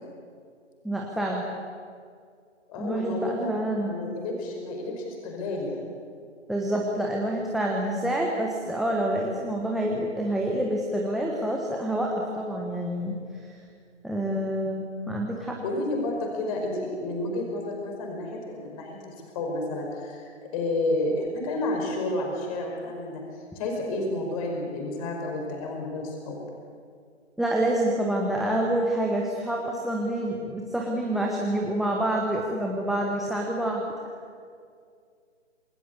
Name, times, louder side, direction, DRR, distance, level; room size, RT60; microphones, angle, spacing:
voice 1, 0.8-1.5 2.8-3.9 6.5-13.2 13.5-13.6 14.0-15.6 27.4-33.8, right 1 dB, ahead, -1 dB, 1.2 m, -27 dB
voice 2, 2.7-5.9 15.6-23.2 23.5-26.4, left 2 dB, 30° left, 1 dB, 5.2 m, -31 dB
27.5 x 19.5 x 8.3 m, 2.2 s
figure-of-eight pair, 135°, 36 cm